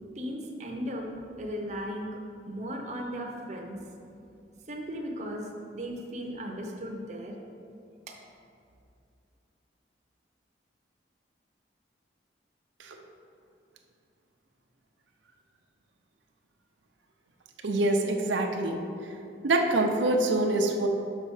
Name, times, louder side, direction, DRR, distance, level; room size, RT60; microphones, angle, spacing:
voice 1, 0.2-1.1 1.4-2.2 2.4-3.8 4.7-7.3 8.1-8.2, equal, 40° right, 0 dB, 0.7 m, -36 dB
voice 2, 17.6-18.8 19.4-20.9, right 2 dB, 85° right, 3 dB, 0.6 m, -25 dB
6.0 x 5.5 x 4.8 m, 2.5 s
head